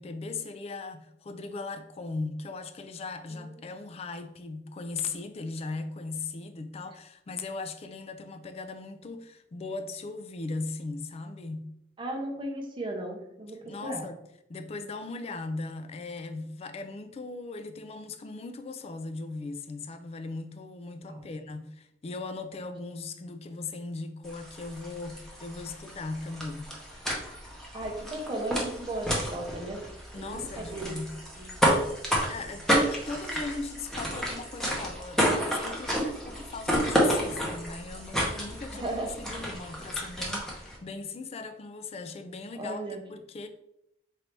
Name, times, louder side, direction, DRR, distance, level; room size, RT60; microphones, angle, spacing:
voice 1, 0.0-11.7 13.7-14.2 14.5-26.7 30.1-31.2 32.3-42.8 43.1-43.5, left 3 dB, 35° left, 0.4 m, -38 dB
voice 2, 12.0-14.1 21.1-21.2 27.7-29.8 30.1-30.9 31.4-31.5 38.7-39.1 42.5-43.0, right 1 dB, 30° right, 0.7 m, -35 dB
sound 1, 24.2-40.8, equal, 5° left, 0.8 m, -31 dB
3.3 x 2.7 x 4.4 m
head